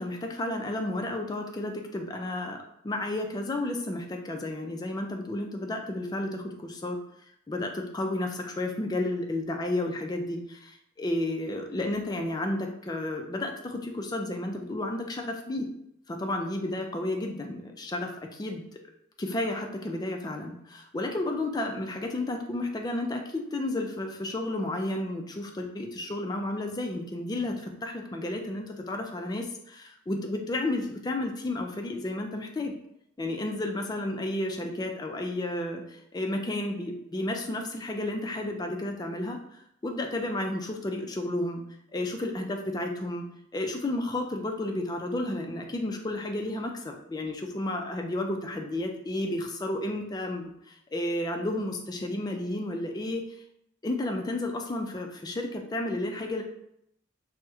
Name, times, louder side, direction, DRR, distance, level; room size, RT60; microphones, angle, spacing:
voice 1, 0.0-2.6 2.8-7.0 7.5-15.7 16.1-18.7 19.2-32.7 33.2-39.4 39.8-41.6 41.9-43.3 43.5-53.4 53.8-56.4, left 1 dB, 20° left, 3 dB, 0.3 m, -32 dB
2.9 x 2.1 x 3.4 m, 0.75 s
head